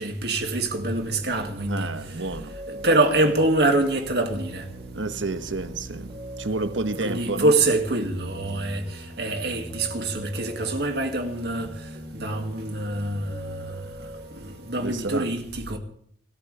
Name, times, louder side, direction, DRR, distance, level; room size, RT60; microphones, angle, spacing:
voice 1, 0.0-2.2 2.7-4.7 7.0-14.1 14.3-15.8, right 2 dB, 60° right, 2.3 m, -25 dB
Piano, 0.7-15.1, right 1 dB, 25° right, 5.5 m, -41 dB
voice 2, 1.7-2.6 4.9-7.5 14.8-15.3, right 2 dB, 85° right, 1.3 m, -30 dB
25.5 x 14.0 x 3.5 m
head